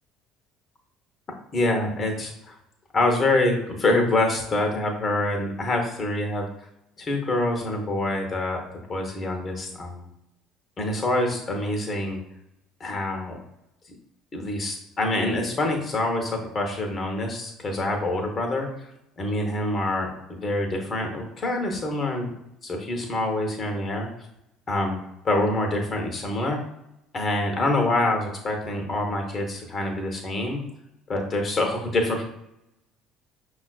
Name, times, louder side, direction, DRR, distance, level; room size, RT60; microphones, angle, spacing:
voice 1, 1.5-2.6 2.9-6.5 7.0-8.6 8.9-10.0 10.8-12.2 12.8-13.4 14.3-18.9 19.2-22.3 22.6-24.1 24.7-25.0 25.2-26.6 27.1-30.6 31.1-32.2, left 2 dB, 35° left, 3 dB, 0.9 m, -26 dB
5.7 x 2.4 x 2.3 m, 0.83 s
figure-of-eight pair, 60°, 0 cm